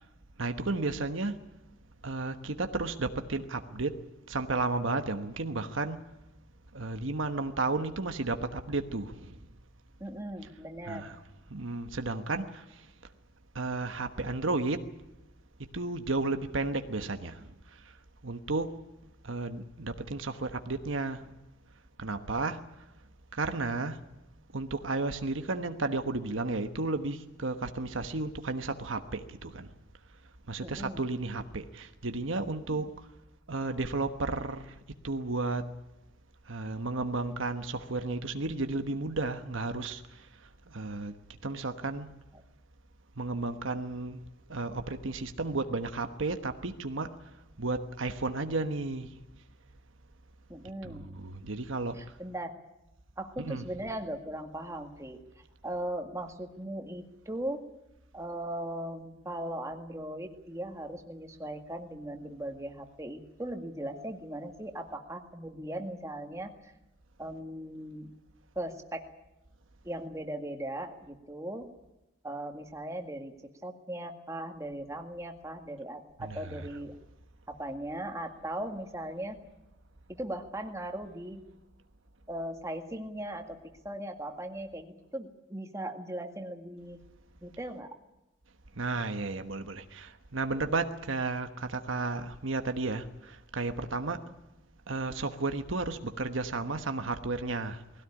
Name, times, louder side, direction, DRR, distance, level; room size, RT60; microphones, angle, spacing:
voice 1, 0.4-1.4 2.0-3.9 4.3-6.0 6.7-9.3 10.9-11.1 11.5-12.6 13.5-14.9 15.7-17.4 18.2-18.8 19.2-21.2 22.0-22.6 23.3-24.0 24.5-29.7 30.5-32.9 33.5-34.7 35.0-35.7 36.5-40.0 40.7-41.1 41.4-42.1 43.2-44.2 44.5-47.1 47.6-49.1 50.8-52.0 53.4-53.6 76.2-76.4 88.8-94.2 94.9-97.8, right 3 dB, 75° right, 8 dB, 1.2 m, -33 dB
voice 2, 10.0-11.1 30.6-31.0 32.7-32.9 50.5-51.1 51.9-52.6 53.2-55.2 55.6-57.6 58.1-66.7 67.2-68.1 68.6-69.1 69.8-71.7 72.2-73.3 73.6-77.0 77.5-79.4 80.1-81.4 82.3-83.6 83.8-87.0 87.4-87.9 94.1-94.3, right 1 dB, 15° right, 4 dB, 2.0 m, -38 dB
20.5 x 16.5 x 10.0 m, 0.95 s
head